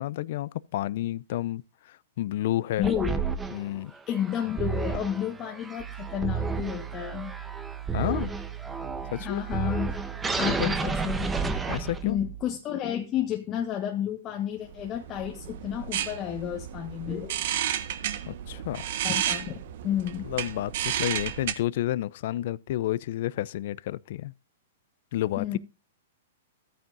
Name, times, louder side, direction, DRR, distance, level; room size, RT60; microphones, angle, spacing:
voice 1, 0.0-2.9 3.5-3.9 7.9-8.3 9.1-9.4 10.4-10.7 11.7-12.2 18.3-18.8 20.2-24.3 25.1-25.6, left 14 dB, 60° left, 0.5 m, -30 dB
voice 2, 2.8-3.4 4.1-7.3 9.2-9.9 10.4-11.3 12.0-17.4 19.0-20.3 25.4-25.6, left 10 dB, 30° left, 1.3 m, -31 dB
sound 1, 2.8-12.3, right 5 dB, 10° right, 1.1 m, -32 dB
sound 2, 5.8-12.6, right 14 dB, 35° right, 1.6 m, -41 dB
sound 3, 14.7-21.5, right 11 dB, 60° right, 1.2 m, -32 dB
14.0 x 9.1 x 2.6 m
hypercardioid pair, 130°, 0 cm